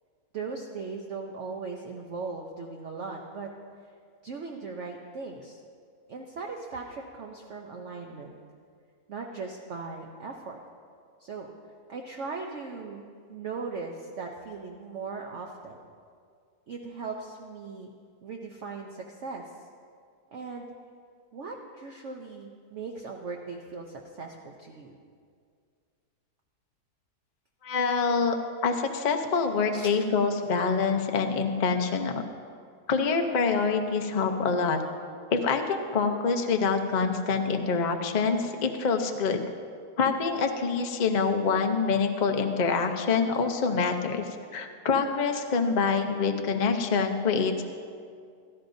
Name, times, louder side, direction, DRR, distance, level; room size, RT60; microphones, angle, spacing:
voice 1, 0.3-3.5 4.2-5.6 6.1-8.3 9.1-10.6 11.2-11.5 11.9-13.0 13.3-15.8 16.7-17.9 18.2-19.4 20.3-20.7 21.3-25.0 29.3-29.4 29.7-30.3, right 4 dB, 55° right, 0 dB, 0.9 m, -38 dB
voice 2, 27.6-28.3 28.6-32.2 32.9-34.8 35.3-39.4 40.0-47.6, left 5 dB, 50° left, 5 dB, 0.5 m, -26 dB
16.5 x 13.0 x 2.6 m, 2.2 s
omnidirectional pair, 1.8 m